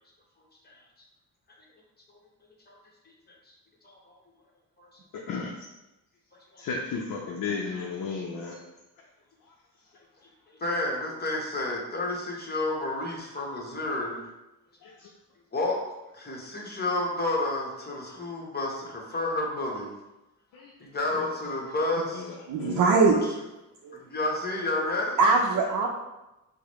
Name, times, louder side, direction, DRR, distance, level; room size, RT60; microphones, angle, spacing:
voice 1, 6.6-8.6 14.8-15.1 20.5-20.7 21.1-21.3 22.1-22.8, left 4 dB, 70° left, -2 dB, 0.6 m, -34 dB
voice 2, 10.6-14.2 15.5-15.8 16.1-19.9 20.8-22.3 23.1-23.2 23.9-25.2, left 2 dB, 30° left, -2 dB, 1.0 m, -30 dB
voice 3, 22.5-23.2 23.8-24.0 25.2-25.9, right 4 dB, 75° right, -1 dB, 0.6 m, -21 dB
4.7 x 2.1 x 3.0 m, 0.99 s
cardioid pair, 80°, 33 cm